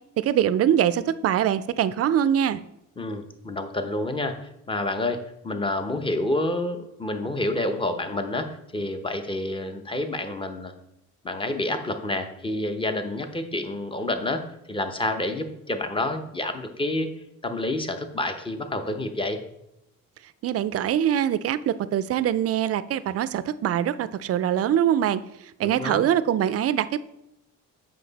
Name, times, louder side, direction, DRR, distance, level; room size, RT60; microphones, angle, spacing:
voice 1, 0.2-2.6 20.4-25.2 25.6-27.0, right 10 dB, 50° right, 15 dB, 0.4 m, -23 dB
voice 2, 3.0-10.7 11.2-17.1 17.4-19.4 25.6-26.0, left 2 dB, 15° left, 7 dB, 0.8 m, -29 dB
7.7 x 5.5 x 4.0 m, 0.84 s
cardioid pair, 110°, 32 cm